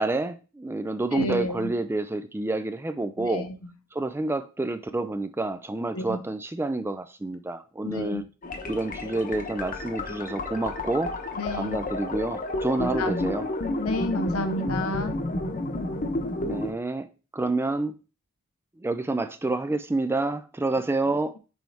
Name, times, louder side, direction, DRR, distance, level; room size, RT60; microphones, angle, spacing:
voice 1, 0.0-3.5 3.9-8.2 8.7-11.2 11.5-13.5 16.4-17.1 17.3-18.0 18.8-21.3, right 2 dB, 10° right, 0.3 m, -28 dB
voice 2, 1.1-1.7 3.2-3.7 5.9-6.2 7.8-8.2 11.4-11.8 12.8-13.4 13.6-15.2, left 1 dB, 75° left, 1.0 m, -31 dB
sound 1, 8.4-16.7, left 2 dB, 40° left, 0.9 m, -31 dB
6.2 x 4.5 x 3.4 m
head